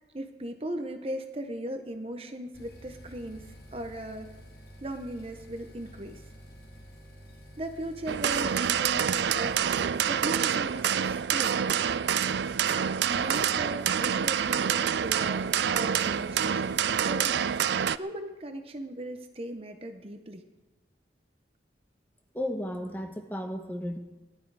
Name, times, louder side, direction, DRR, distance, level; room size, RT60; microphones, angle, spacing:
voice 1, 0.1-4.3 4.8-6.2 7.6-11.6 13.1-20.4, right 1 dB, 30° right, 6 dB, 0.9 m, -38 dB
sound 1, 2.5-9.5, equal, 65° left, 4.5 m, -49 dB
sound 2, 8.1-18.0, right 8 dB, 70° right, 0.4 m, -27 dB
voice 2, 22.3-24.0, equal, 10° left, 4 dB, 1.2 m, -34 dB
19.0 x 12.0 x 4.9 m, 1.2 s
head